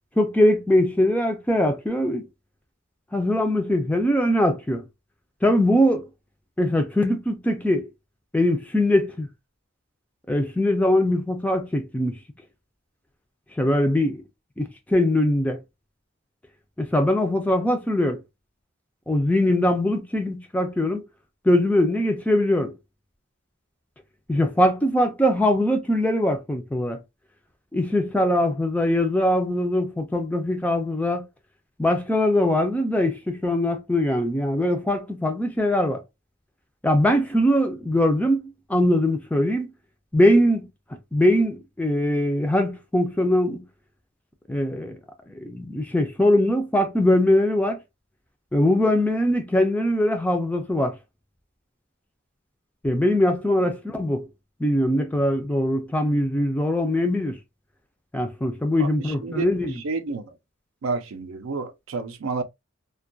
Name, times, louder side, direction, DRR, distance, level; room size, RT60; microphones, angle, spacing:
voice 1, 0.2-2.3 3.1-4.8 5.4-6.0 6.6-7.9 8.3-9.3 10.3-12.2 13.6-14.2 14.6-15.6 16.8-18.2 19.1-21.0 21.5-22.7 24.3-27.0 27.7-31.2 31.8-36.0 36.8-39.7 40.1-40.7 41.1-43.6 44.5-45.0 45.3-47.8 48.5-50.9 52.8-54.3 54.6-57.4 58.1-59.8, left 1 dB, 5° left, 0.3 m, -22 dB
voice 2, 58.8-59.5 59.8-60.4 60.8-62.4, right 4 dB, 80° right, 0.4 m, -30 dB
2.3 x 2.2 x 2.5 m
head